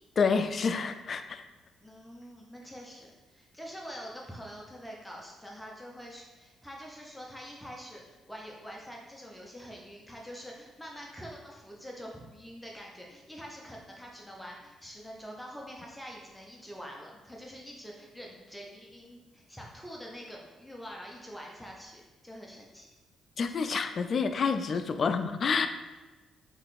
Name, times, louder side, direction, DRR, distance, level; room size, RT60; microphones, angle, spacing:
voice 1, 0.2-1.4 23.4-25.7, left 5 dB, 45° left, 8 dB, 0.3 m, -28 dB
voice 2, 1.8-22.9 24.9-25.2, equal, 5° left, -2 dB, 0.7 m, -45 dB
3.8 x 3.1 x 4.1 m, 1.2 s
cardioid pair, 90°, 0 cm